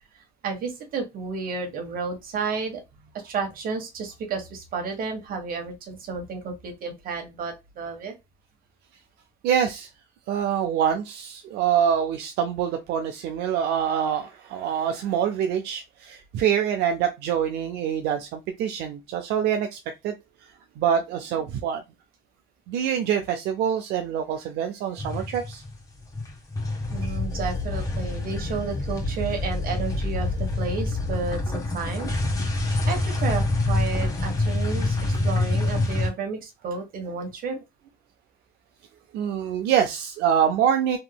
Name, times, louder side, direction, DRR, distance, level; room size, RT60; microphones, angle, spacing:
voice 1, 0.1-2.8 3.2-8.1 26.9-32.4 32.9-37.6, right 5 dB, 60° right, 4 dB, 1.3 m, -32 dB
voice 2, 9.4-9.9 10.3-20.1 20.8-21.8 22.7-25.6 27.0-27.2 39.1-41.0, right 8 dB, 80° right, 6 dB, 0.5 m, -25 dB
sound 1, 25.0-25.8 26.0-36.1, left 2 dB, 20° left, 1.5 m, -26 dB
3.6 x 2.9 x 2.2 m, 0.23 s
cardioid pair, 110°, 17 cm